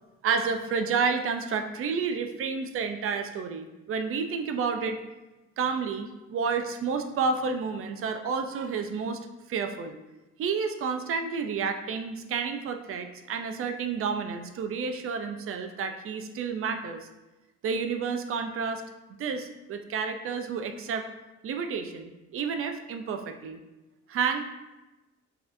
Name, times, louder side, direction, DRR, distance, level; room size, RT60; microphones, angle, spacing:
voice 1, 0.2-5.0 5.6-9.2 9.5-10.0 10.4-17.1 17.6-18.8 19.2-21.1 21.4-23.6 24.1-24.4, right 5 dB, 45° right, 7 dB, 0.4 m, -30 dB
4.0 x 2.7 x 2.5 m, 1.0 s
cardioid pair, 90°, 30 cm